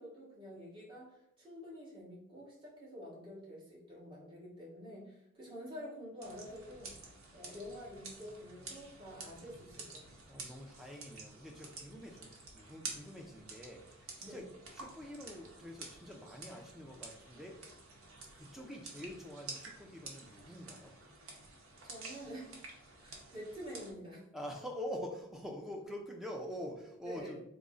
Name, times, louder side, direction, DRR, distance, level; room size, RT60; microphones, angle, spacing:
voice 1, 0.0-7.0 7.3-10.1 14.2-14.4 21.8-22.6 23.0-24.2 27.0-27.4, equal, 25° right, -8 dB, 1.3 m, -48 dB
sound 1, 6.2-23.9, right 3 dB, 75° right, 0.8 m, -50 dB
voice 2, 10.3-17.6 18.3-20.9 24.3-27.4, equal, ahead, 1 dB, 0.4 m, -46 dB
3.6 x 2.0 x 3.7 m, 0.77 s
head